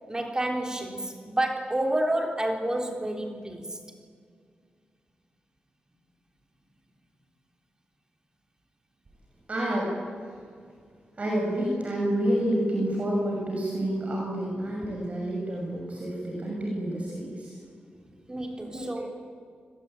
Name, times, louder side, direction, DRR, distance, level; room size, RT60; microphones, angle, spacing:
voice 1, 0.1-3.8 18.3-19.0, right 1 dB, 20° right, 3 dB, 3.6 m, -29 dB
voice 2, 9.5-9.9 11.2-17.6 18.7-19.0, right 1 dB, 40° right, -1 dB, 6.4 m, -29 dB
29.0 x 22.0 x 9.0 m, 2.1 s
wide cardioid pair, 90°, 3 cm